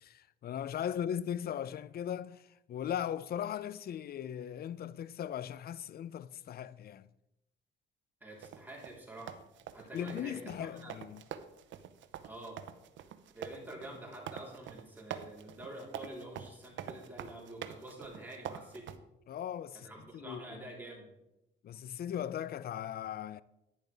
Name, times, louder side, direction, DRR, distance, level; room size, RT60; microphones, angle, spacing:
voice 1, 0.0-7.1 9.9-11.2 19.3-19.9 20.1-20.6 21.6-23.4, left 9 dB, 50° left, 0.4 m, -38 dB
voice 2, 8.2-9.4 9.7-11.0 12.2-12.6 13.3-18.9 19.8-21.1, right 1 dB, 10° right, 3.8 m, -47 dB
sound 1, 8.4-19.0, right 9 dB, 70° right, 0.7 m, -45 dB
10.5 x 10.0 x 3.4 m
cardioid pair, 90°, 20 cm